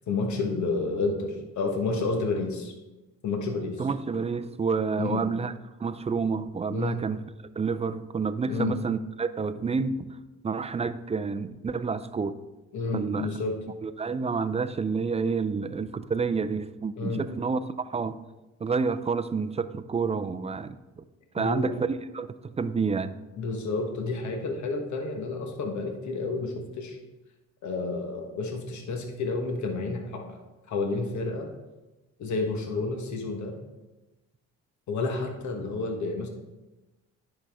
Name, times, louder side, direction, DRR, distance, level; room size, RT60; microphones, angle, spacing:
voice 1, 0.1-2.7 3.2-3.9 5.0-5.2 6.7-7.0 8.5-8.8 12.7-13.6 17.0-17.3 21.4-21.8 23.4-27.0 27.6-30.4 30.7-31.5 32.2-33.6 34.9-36.3, left 3 dB, 70° left, 4 dB, 1.3 m, -30 dB
voice 2, 3.8-5.5 5.8-7.2 7.6-10.0 10.4-12.4 12.9-13.3 13.8-18.2 18.6-21.0 21.3-21.7 22.1-23.2, right 5 dB, 20° right, 12 dB, 0.4 m, -29 dB
9.9 x 5.6 x 3.5 m, 1.1 s
cardioid pair, 90°, 30 cm